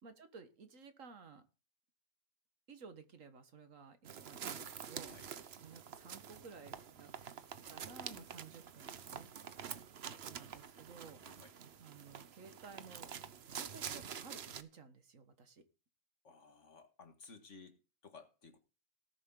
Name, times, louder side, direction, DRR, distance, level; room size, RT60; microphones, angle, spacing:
voice 1, 0.0-1.4 2.7-5.1 5.6-7.1 7.7-9.3 10.1-11.2 11.8-13.1 13.5-15.6, right 5 dB, 80° right, 9 dB, 1.9 m, -55 dB
sound 1, 4.0-14.6, right 7 dB, 55° right, 1.1 m, -47 dB
voice 2, 11.2-11.5 16.2-18.6, left 4 dB, 65° left, 7 dB, 2.1 m, -57 dB
18.0 x 7.1 x 3.8 m, 0.32 s
omnidirectional pair, 1.3 m